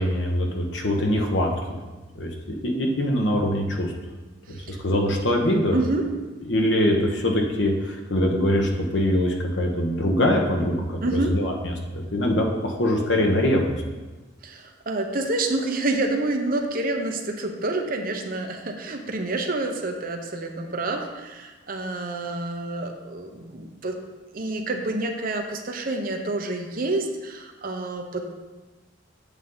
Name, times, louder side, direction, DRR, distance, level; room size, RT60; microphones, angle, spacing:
voice 1, 0.0-1.8 2.1-3.9 4.5-5.8 6.4-13.8, left 1 dB, 65° left, 1 dB, 1.2 m, -23 dB
voice 2, 4.5-4.8 5.7-6.0 11.0-11.3 14.4-24.0 24.3-28.2, right 2 dB, 50° right, 3 dB, 0.9 m, -28 dB
8.4 x 7.1 x 4.0 m, 1.2 s
head